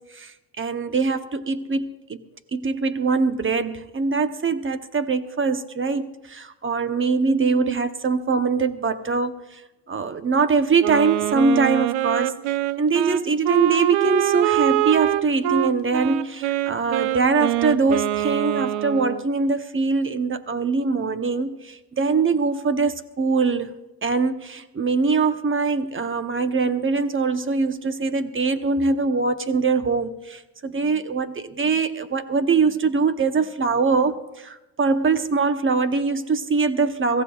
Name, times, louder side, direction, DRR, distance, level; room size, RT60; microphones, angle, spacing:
voice 1, 0.1-2.2 2.5-9.6 9.9-12.4 12.8-23.7 24.0-37.2, right 4 dB, 25° right, 0.8 m, -22 dB
Wind instrument woodwind instrument, 10.8-19.2, right 13 dB, 85° right, 0.6 m, -24 dB
23.0 x 15.5 x 2.4 m
cardioid pair, 90°, 48 cm